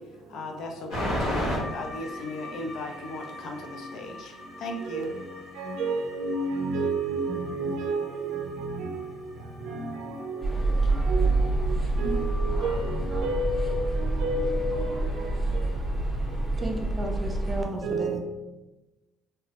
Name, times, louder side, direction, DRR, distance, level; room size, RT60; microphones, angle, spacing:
voice 1, 0.3-5.1, left 2 dB, 65° left, 0.4 m, -37 dB
sound 1, 0.9-14.4, left 1 dB, 80° left, 1.1 m, -38 dB
voice 2, 4.8-5.2 5.6-9.1 9.6-10.5 11.0-15.3 15.5-15.6 16.6-16.7 17.8-18.2, right 2 dB, 85° right, 0.5 m, -31 dB
sound 2, 10.4-17.6, right 2 dB, 10° left, 0.7 m, -27 dB
voice 3, 16.6-18.2, right 2 dB, 20° right, 0.4 m, -33 dB
3.1 x 2.0 x 2.8 m
cardioid pair, 135°, 0 cm